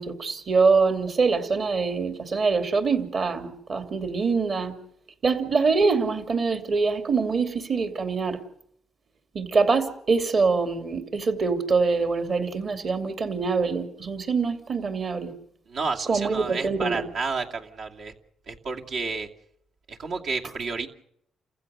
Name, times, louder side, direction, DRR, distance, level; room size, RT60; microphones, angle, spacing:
voice 1, 0.0-4.8 5.2-8.4 9.3-15.3 16.1-17.1, right 4 dB, 45° right, 2.8 m, -24 dB
voice 2, 15.7-18.1 18.5-19.3 19.9-20.9, right 4 dB, 65° right, 2.5 m, -31 dB
29.0 x 15.5 x 6.9 m
cardioid pair, 90°, 0 cm